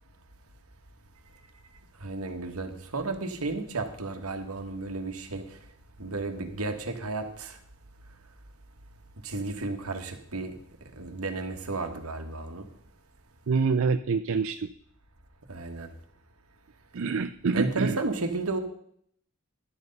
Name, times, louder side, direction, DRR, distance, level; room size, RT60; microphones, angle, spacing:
voice 1, 2.0-5.6 6.0-7.6 9.2-10.6 11.0-12.6 15.5-15.9 17.5-18.6, right 3 dB, 80° right, 1.6 m, -33 dB
voice 2, 13.5-14.7 16.9-18.0, right 5 dB, 65° right, 0.4 m, -26 dB
11.5 x 8.0 x 5.4 m
head